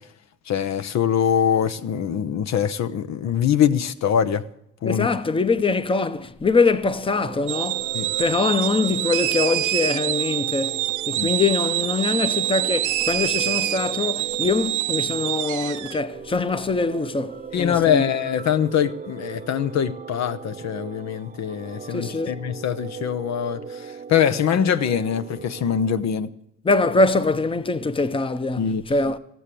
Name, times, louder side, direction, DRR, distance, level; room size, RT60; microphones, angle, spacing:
voice 1, 0.5-4.4 4.8-5.1 7.9-8.1 11.2-11.3 17.5-26.3 28.6-28.8, left 8 dB, 65° left, 0.8 m, -23 dB
voice 2, 4.8-7.9 8.2-18.0 21.9-22.3 26.6-29.2, left 3 dB, 15° left, 0.8 m, -23 dB
sound 1, 6.7-26.0, right 6 dB, 25° right, 0.6 m, -38 dB
sound 2, 7.5-16.0, right 15 dB, 75° right, 0.6 m, -26 dB
15.5 x 7.7 x 8.3 m
cardioid pair, 90°, 30 cm